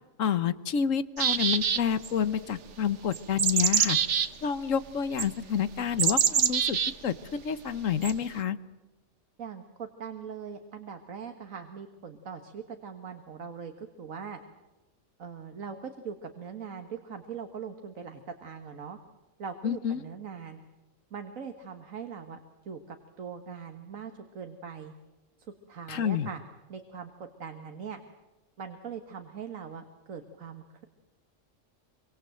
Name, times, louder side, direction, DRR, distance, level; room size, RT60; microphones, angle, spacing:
voice 1, 0.2-4.0 4.4-6.8 7.0-8.6 19.6-20.0 25.9-26.3, left 8 dB, 75° left, 15 dB, 1.4 m, -29 dB
sound 1, 1.2-2.1 3.1-4.3 5.2-5.3 6.0-6.9 8.0-8.1, right 7 dB, 65° right, 1.4 m, -25 dB
voice 2, 9.4-14.4 15.2-19.0 19.4-20.6 21.1-22.4 22.7-24.9 25.7-26.4 26.7-28.0 28.6-30.8, right 6 dB, 90° right, 6 dB, 1.9 m, -41 dB
25.5 x 25.0 x 7.8 m, 1.1 s
omnidirectional pair, 1.4 m